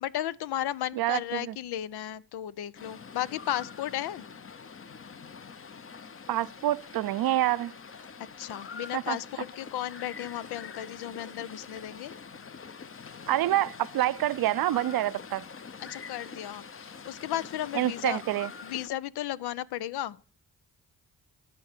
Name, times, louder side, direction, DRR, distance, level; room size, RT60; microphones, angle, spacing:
voice 1, 0.0-4.2 8.4-12.1 15.8-18.2 18.6-20.2, left 12 dB, 80° left, 0.5 m, -34 dB
voice 2, 0.9-1.6 6.3-7.7 8.9-9.2 13.3-15.4 17.7-18.5, right 14 dB, 65° right, 0.5 m, -27 dB
sound 1, 2.8-18.9, left 5 dB, 35° left, 0.7 m, -45 dB
sound 2, 6.4-9.0 9.6-12.2, left 3 dB, 60° left, 4.3 m, -61 dB
13.0 x 4.5 x 6.6 m
cardioid pair, 55°, 39 cm